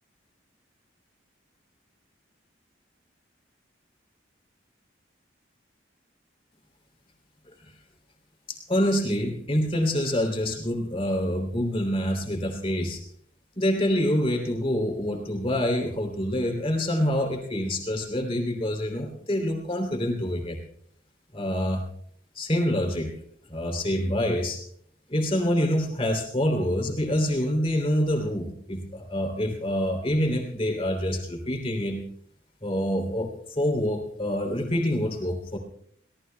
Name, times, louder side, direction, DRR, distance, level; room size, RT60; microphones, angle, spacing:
voice 1, 8.5-13.0 13.5-20.6 21.3-21.8 22.3-23.1 23.5-24.6 25.1-32.0 32.6-35.6, equal, 30° left, 2 dB, 3.0 m, -26 dB
23.0 x 17.5 x 2.2 m, 0.64 s
head